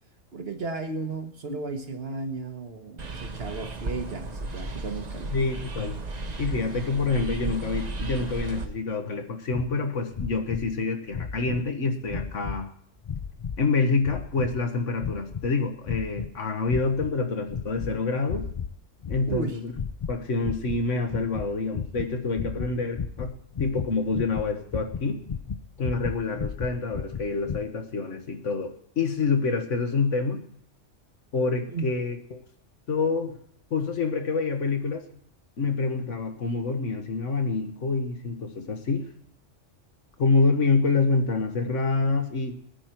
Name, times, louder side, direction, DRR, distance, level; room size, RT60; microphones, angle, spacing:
voice 1, 0.3-5.4 19.3-19.6 31.7-31.9, right 3 dB, 55° right, 6 dB, 1.4 m, -34 dB
sound 1, 3.0-8.7, right 2 dB, 35° right, 1.0 m, -34 dB
voice 2, 5.3-6.0 6.4-12.7 13.6-18.5 19.1-19.7 20.1-23.3 23.6-25.2 25.8-30.4 31.3-32.4 32.9-33.4 33.7-35.0 35.6-39.1 40.2-42.5, left 4 dB, 75° left, 6 dB, 1.6 m, -27 dB
sound 2, 9.5-9.7 10.1-10.7 11.1-11.6 12.1-12.6 13.0-13.6 14.0-14.6 15.0-15.5 15.8-16.3 16.7-17.2 17.5-17.9 18.3-18.7 19.0-19.4 19.7-20.2 20.4-27.6, left 6 dB, 50° left, 0.4 m, -34 dB
19.0 x 9.9 x 4.5 m, 0.68 s
omnidirectional pair, 1.3 m